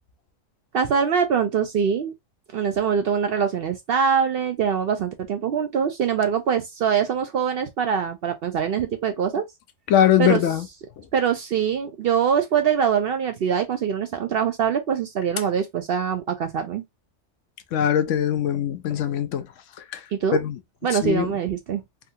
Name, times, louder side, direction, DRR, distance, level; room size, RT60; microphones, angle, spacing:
voice 1, 0.7-2.1 2.5-9.4 10.2-10.4 11.1-16.8 20.1-20.4 20.8-21.8, right 7 dB, 65° right, 0.6 m, -23 dB
voice 2, 9.9-10.6 17.7-19.5 19.9-20.0 20.3-20.6 21.0-21.3, left 10 dB, 75° left, 0.9 m, -21 dB
3.5 x 2.3 x 2.7 m
omnidirectional pair, 1.3 m